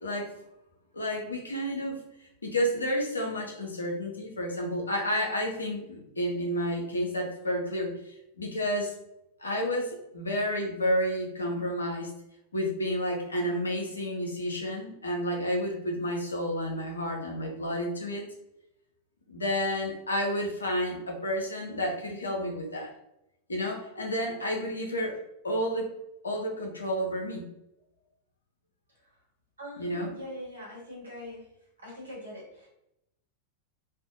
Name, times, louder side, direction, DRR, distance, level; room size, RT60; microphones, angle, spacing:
voice 1, 0.0-0.3 0.9-2.0 2.4-7.9 8.4-8.9 9.4-12.1 12.5-18.3 19.3-22.9 23.5-25.2 25.4-25.9 26.2-27.5 29.8-30.1, equal, 75° left, 0 dB, 0.6 m, -30 dB
voice 2, 29.6-31.5 31.8-32.7, left 1 dB, 75° right, -3 dB, 1.1 m, -42 dB
2.5 x 2.1 x 2.6 m, 0.85 s
figure-of-eight pair, 90°, 0 cm